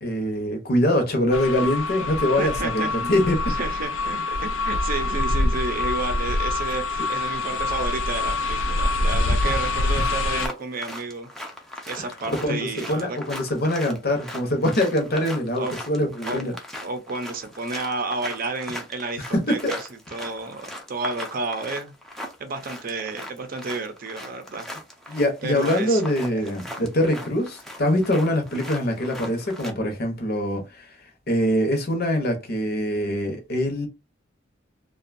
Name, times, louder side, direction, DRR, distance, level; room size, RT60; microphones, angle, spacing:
voice 1, 0.0-3.4 9.4-9.5 12.3-16.5 19.3-19.7 25.1-30.9 31.3-33.9, left 1 dB, 55° left, 0.8 m, -23 dB
sound 1, 1.3-10.5, left 2 dB, 90° left, 0.4 m, -25 dB
voice 2, 2.4-3.2 3.5-11.3 11.9-13.2 15.6-15.7 16.3-16.4 16.8-21.9 22.4-24.7 25.1-26.0, right 3 dB, 45° right, 0.5 m, -31 dB
sound 2, 10.3-29.7, left 1 dB, ahead, 0.5 m, -39 dB
2.6 x 2.3 x 2.5 m
head